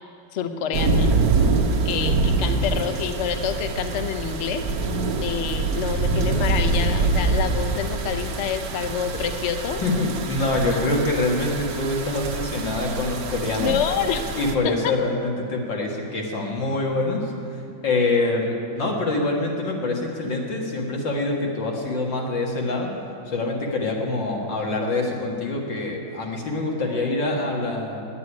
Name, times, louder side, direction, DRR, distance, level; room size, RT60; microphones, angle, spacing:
voice 1, 0.3-1.1 1.8-4.7 5.2-9.8 10.7-10.8 13.6-14.3 14.6-14.9, left 8 dB, 55° left, 8 dB, 0.8 m, -27 dB
sound 1, 0.7-14.5, right 3 dB, 60° right, 1.2 m, -25 dB
voice 2, 9.8-13.7 14.3-23.0 23.3-28.0, left 2 dB, 70° left, -1 dB, 2.4 m, -25 dB
9.8 x 9.6 x 9.4 m, 2.4 s
omnidirectional pair, 2.1 m